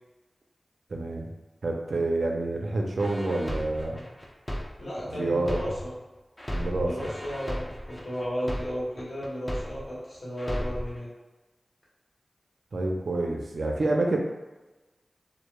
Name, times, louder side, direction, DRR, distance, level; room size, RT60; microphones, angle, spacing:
voice 1, 0.9-1.3 1.6-4.0 5.2-5.6 6.5-6.9 12.7-14.2, right 2 dB, 80° right, 0 dB, 0.3 m, -28 dB
sound 1, 3.0-6.0 6.4-10.0 10.4-11.0, equal, 20° left, 0.4 m, -35 dB
voice 2, 4.8-5.9 6.7-11.1, equal, 65° left, -7 dB, 0.9 m, -34 dB
2.1 x 2.0 x 3.0 m, 1.1 s
cardioid pair, 45°, 0 cm